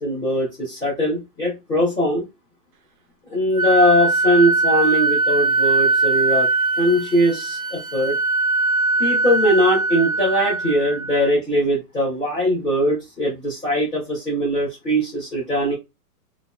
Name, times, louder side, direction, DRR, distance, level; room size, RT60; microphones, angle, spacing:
voice 1, 0.0-2.2 3.3-6.5 6.8-8.2 9.0-15.7, equal, ahead, -20 dB, 0.5 m, -20 dB
Wind instrument woodwind instrument, 3.5-11.3, right 3 dB, 65° right, 0.7 m, -21 dB
3.9 x 2.4 x 2.3 m, 0.24 s
hypercardioid pair, 165°, 46 cm